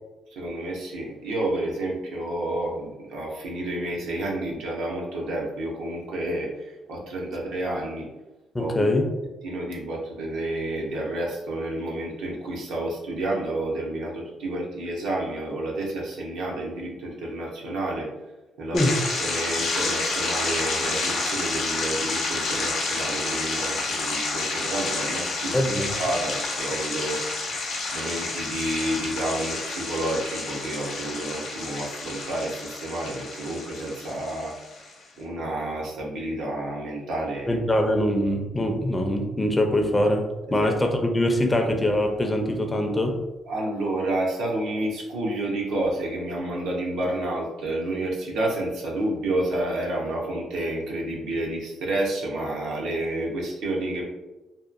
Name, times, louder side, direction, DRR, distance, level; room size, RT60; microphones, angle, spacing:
voice 1, 0.3-8.1 8.6-8.9 9.4-18.1 18.6-18.9 19.2-25.7 26.0-34.5 35.2-37.6 40.6-40.7 43.5-54.0, right 1 dB, 85° right, -2 dB, 0.7 m, -30 dB
voice 2, 8.5-9.1 18.7-19.0 25.5-25.9 37.5-43.2, left 1 dB, 20° left, 4 dB, 0.4 m, -23 dB
sound 1, 18.7-34.9, left 3 dB, 70° left, 0.6 m, -29 dB
2.8 x 2.2 x 2.4 m, 1.1 s
cardioid pair, 90°, 0 cm